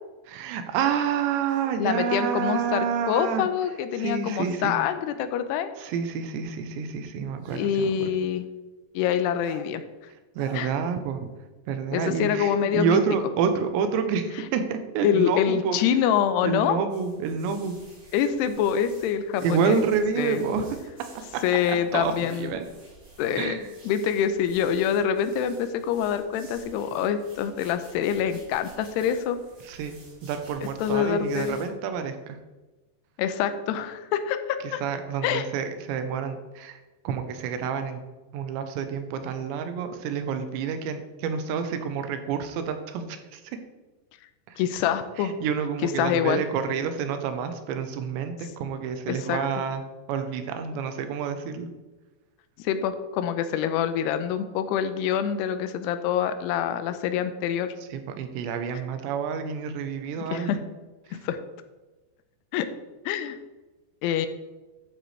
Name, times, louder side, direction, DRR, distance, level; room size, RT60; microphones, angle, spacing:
voice 1, 0.3-3.5 4.0-4.7 5.8-8.1 10.4-11.3 11.7-15.8 16.4-17.7 19.4-20.7 21.9-22.6 23.4-23.7 29.7-30.0 30.2-32.4 34.8-36.8 37.0-38.0 38.3-43.4 44.5-44.6 45.2-49.8 50.1-51.7 57.9-60.6, right 6 dB, 85° right, 8 dB, 3.1 m, -28 dB
sound 1, 1.4-1.8 4.2-4.5 5.8-5.9 7.4-7.7 9.4-9.7 10.3-10.6, right 5 dB, 65° right, 2.6 m, -46 dB
voice 2, 1.8-5.7 7.5-8.5 8.9-9.8 10.5-10.7 11.9-13.0 15.0-16.8 18.1-19.8 20.2-20.4 21.4-22.6 23.2-23.6 23.8-29.4 30.8-31.6 33.2-34.8 35.2-35.5 44.6-45.3 45.8-46.4 49.1-49.4 52.6-57.7 60.2-60.6 61.1-61.4 62.5-62.7 63.1-63.4 64.0-64.3, left 9 dB, 80° left, 9 dB, 2.7 m, -25 dB
sound 2, 16.9-31.7, right 2 dB, 50° right, 5.0 m, -52 dB
11.5 x 8.0 x 3.3 m, 1.2 s
omnidirectional pair, 5.0 m